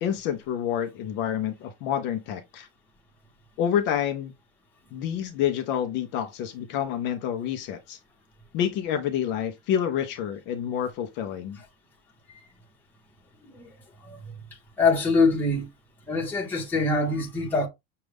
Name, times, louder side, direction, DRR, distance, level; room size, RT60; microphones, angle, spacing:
voice 1, 0.0-2.7 3.6-4.3 4.9-8.0 8.5-11.6, left 9 dB, 35° left, 0.4 m, -28 dB
voice 2, 14.8-15.7 16.1-17.7, left 3 dB, 5° left, 0.9 m, -24 dB
6.2 x 2.3 x 3.3 m
cardioid pair, 180°, 35 cm